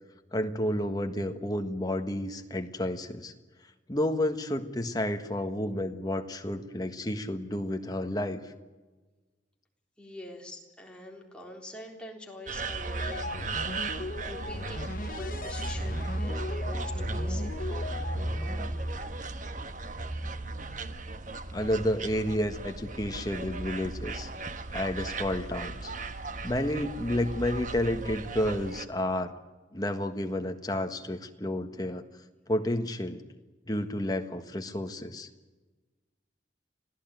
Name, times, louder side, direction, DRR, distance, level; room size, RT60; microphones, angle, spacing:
voice 1, 0.3-3.3 3.9-8.4 21.5-24.3 24.7-25.9 26.4-29.3 29.7-32.0 32.5-33.2 33.7-35.3, left 1 dB, 20° left, 6 dB, 1.6 m, -31 dB
voice 2, 10.0-19.1, left 1 dB, 5° left, 0 dB, 3.8 m, -45 dB
sound 1, 12.5-28.9, right 2 dB, 45° right, 1.3 m, -35 dB
sound 2, 13.0-18.7, left 2 dB, 50° left, 0.9 m, -39 dB
25.5 x 16.5 x 9.3 m, 1.3 s
head